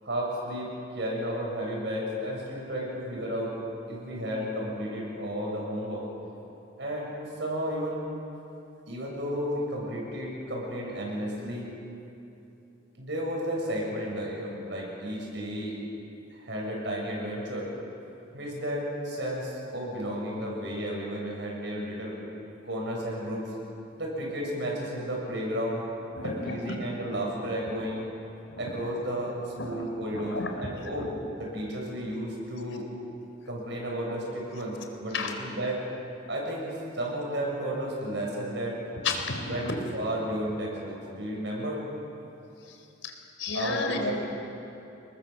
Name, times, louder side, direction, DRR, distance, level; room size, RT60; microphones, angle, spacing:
voice 1, 0.0-0.7 0.9-3.6 3.9-6.0 6.8-8.0 8.9-11.7 13.0-15.8 16.3-17.7 18.3-22.2 22.6-23.5 24.0-25.8 26.2-28.0 28.6-31.1 31.4-32.9 33.5-35.8 36.3-36.7 36.9-38.8 39.5-41.9 43.5-44.1, equal, 65° right, -2 dB, 7.7 m, -33 dB
voice 2, 26.1-26.7 27.7-27.8 28.5-28.6 29.6-29.8 30.1-30.6 30.9-31.1 35.1-35.3 39.0-39.7 42.6-44.1, left 3 dB, 85° left, 4 dB, 4.1 m, -33 dB
30.0 x 21.5 x 7.6 m, 2.9 s
head